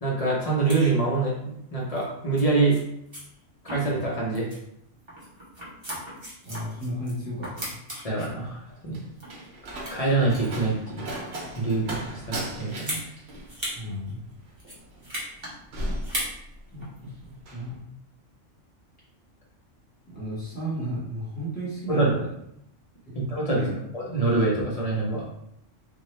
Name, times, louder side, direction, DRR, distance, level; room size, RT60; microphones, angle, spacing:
voice 1, 0.0-2.8 3.6-4.5 8.0-9.0 9.9-11.1 11.6-13.0 21.9-22.2 23.1-23.6 23.9-25.2, right 3 dB, 40° left, -4 dB, 0.6 m, -25 dB
sound 1, 0.7-0.9 1.9-2.0 2.4-2.5 2.7-2.8 3.1-3.2 3.7-4.1 4.3-4.6 5.1-7.1 7.4-8.3 8.9-9.4 9.7-10.2 10.9-11.4 12.7-13.1 13.5-13.8 14.1-14.2 14.6-15.5 16.0-16.4 16.8-17.0, equal, 25° right, 0.8 m, -36 dB
voice 2, 6.4-7.7 13.7-14.2 16.7-17.1 17.5-17.8 20.1-22.3 23.1-23.2 23.5-23.8, equal, 5° left, -9 dB, 1.4 m, -33 dB
Slam, 8.4-16.9 17.2-17.7, right 1 dB, 60° right, 0.9 m, -37 dB
2.8 x 2.2 x 3.2 m, 0.76 s
omnidirectional pair, 1.3 m